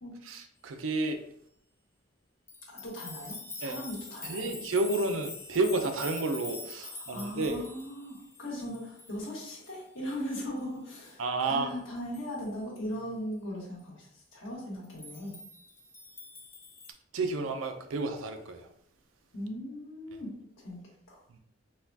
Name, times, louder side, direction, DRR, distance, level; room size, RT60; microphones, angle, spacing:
voice 1, 0.2-1.2 3.6-3.8 4.2-7.6 11.2-11.7 17.1-18.7 21.3-21.4, right 3 dB, 85° right, 0.5 m, -31 dB
sound 1, 2.5-9.8 10.1-10.2 10.6-10.7 11.0-11.1 11.5-11.6 12.0-12.5 14.9-16.9, left 3 dB, 15° left, 0.3 m, -45 dB
voice 2, 2.7-4.5 6.8-15.4 19.3-20.8 21.1-21.2, equal, 75° left, 1.5 m, -39 dB
4.1 x 2.3 x 2.7 m
head